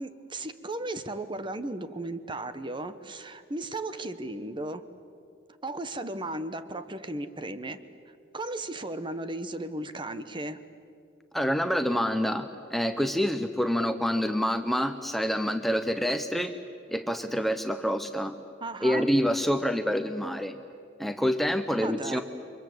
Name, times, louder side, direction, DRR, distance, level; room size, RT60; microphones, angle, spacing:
voice 1, 0.0-4.8 5.6-7.8 8.3-10.6 18.6-19.1 21.8-22.2, right 2 dB, 25° right, 11 dB, 1.1 m, -35 dB
voice 2, 11.3-16.5 16.9-18.3 18.8-20.6 21.0-22.2, equal, ahead, 7 dB, 0.8 m, -27 dB
29.5 x 24.5 x 7.9 m, 2.4 s
head